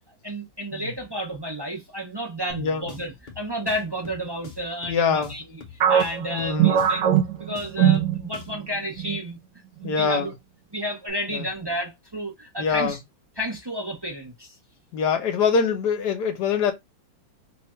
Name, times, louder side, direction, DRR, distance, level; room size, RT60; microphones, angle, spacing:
voice 1, 0.2-5.6 5.9-7.1 7.4-9.4 9.8-10.3 10.7-13.0 13.4-14.5, equal, 35° right, 0.4 m, -31 dB
sound 1, 2.5-8.7, left 5 dB, 40° left, 0.7 m, -46 dB
voice 2, 2.6-2.9 4.9-5.3 6.3-6.8 9.8-10.3 11.3-11.4 12.6-12.9 14.9-16.7, left 6 dB, 70° left, 1.4 m, -24 dB
sound 2, 5.8-8.7 9.0-9.2 9.8-10.3, right 9 dB, 70° right, 1.3 m, -21 dB
3.3 x 2.4 x 4.2 m
omnidirectional pair, 2.0 m